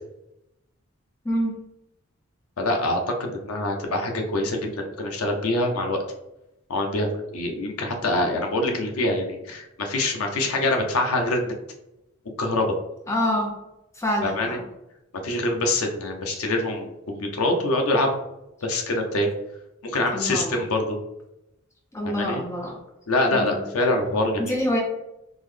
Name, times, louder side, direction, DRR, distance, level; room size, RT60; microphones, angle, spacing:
voice 1, 1.2-1.6 13.1-13.6 13.9-14.6 20.1-20.5 21.9-22.8 23.3-23.7 24.4-24.8, equal, 15° left, 0 dB, 0.4 m, -26 dB
voice 2, 2.6-6.0 6.7-11.5 12.4-12.7 14.2-14.6 15.2-18.1 18.6-19.3 19.8-21.0 22.0-22.4 23.1-24.5, left 2 dB, 85° left, 3 dB, 0.6 m, -25 dB
3.7 x 2.1 x 3.2 m, 0.88 s
head